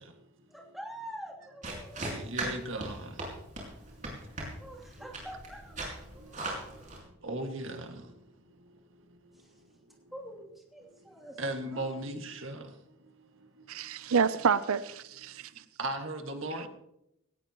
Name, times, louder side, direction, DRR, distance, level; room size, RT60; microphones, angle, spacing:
voice 1, 0.5-2.2 4.6-6.9 9.3-9.6 10.1-11.4 11.7-11.9, equal, ahead, 2.9 m, -46 dB
sound 1, 1.6-7.0, right 2 dB, 35° right, 5.2 m, -39 dB
voice 2, 2.1-3.0 7.2-7.8 11.4-12.6 15.8-16.7, right 2 dB, 70° right, 1.9 m, -36 dB
voice 3, 13.7-15.6 16.6-16.7, right 6 dB, 85° right, 0.5 m, -29 dB
18.0 x 18.0 x 3.0 m
head